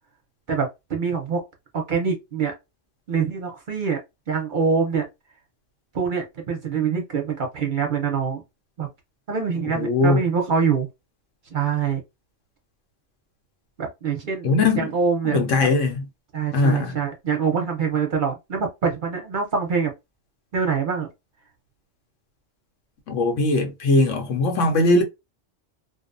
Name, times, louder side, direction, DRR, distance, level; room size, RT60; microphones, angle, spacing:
voice 1, 0.5-1.4 1.7-2.5 3.1-4.0 4.3-5.0 5.9-8.4 8.8-8.9 9.3-10.9 11.5-12.0 13.8-14.5 14.7-15.7 16.3-19.9 20.5-21.1, right 6 dB, 50° right, 0.7 m, -24 dB
voice 2, 9.7-10.2 14.4-14.9 15.2-16.0 16.5-17.0 23.1-25.0, left 2 dB, 85° left, 1.1 m, -20 dB
2.5 x 2.2 x 2.4 m
omnidirectional pair, 1.2 m